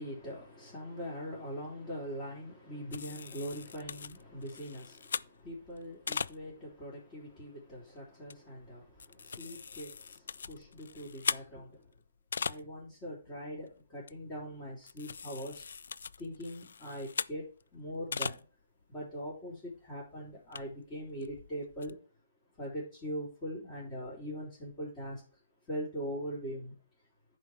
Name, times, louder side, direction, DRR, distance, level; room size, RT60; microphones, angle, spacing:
voice 1, 0.0-11.9 12.4-15.7 16.2-17.5 17.7-18.5 18.9-22.0 22.6-25.2 25.7-26.8, equal, 25° left, -6 dB, 3.8 m, -42 dB
sound 1, 2.9-6.7 7.3-7.4 7.7-7.9 8.3-8.4 8.7-12.9 13.2-13.4 13.7-13.8 14.1-14.4 14.8-17.6 17.9-18.4 18.8-18.9 19.3-19.4 19.7-19.8 20.3-21.9, left 6 dB, 75° left, 0.3 m, -40 dB
10.5 x 4.9 x 4.7 m, 0.38 s
hypercardioid pair, 135°, 0 cm